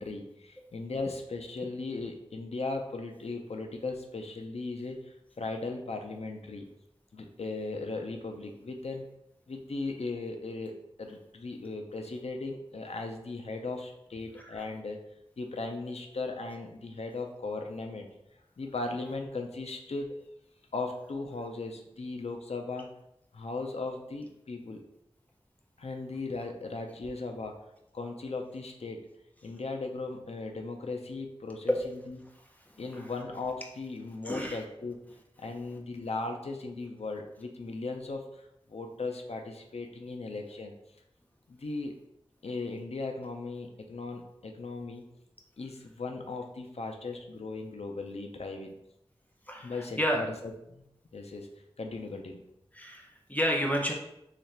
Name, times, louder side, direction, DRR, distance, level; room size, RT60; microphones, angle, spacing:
voice 1, 0.0-6.7 7.1-9.0 9.5-10.7 11.0-15.0 15.4-18.1 18.6-20.1 20.7-22.9 23.3-24.8 25.8-27.6 27.9-29.0 29.4-32.2 32.8-35.0 35.4-40.7 41.5-41.9 42.4-45.0 45.6-48.8 49.6-50.8 51.1-51.5 51.8-52.4, left 3 dB, 85° left, 3 dB, 0.5 m, -37 dB
voice 2, 34.2-34.6 49.5-50.3 52.7-53.9, equal, 15° left, 0 dB, 0.6 m, -30 dB
3.1 x 2.4 x 4.3 m, 0.83 s
wide cardioid pair, 55°, 10 cm